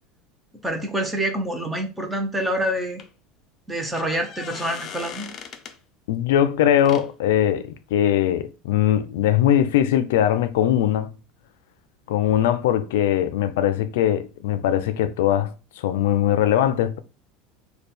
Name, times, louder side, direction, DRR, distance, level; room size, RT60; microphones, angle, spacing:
voice 1, 0.6-3.0 3.7-5.3, right 1 dB, 10° right, 0.7 m, -26 dB
sound 1, 2.4-2.5 3.0-3.1 3.7-5.8 6.8-7.1 10.3-10.4 10.7-10.8, left 7 dB, 30° left, 0.5 m, -38 dB
voice 2, 6.1-11.1 12.1-17.0, left 11 dB, 85° left, 0.4 m, -21 dB
3.3 x 2.2 x 4.3 m
supercardioid pair, 155°, 0 cm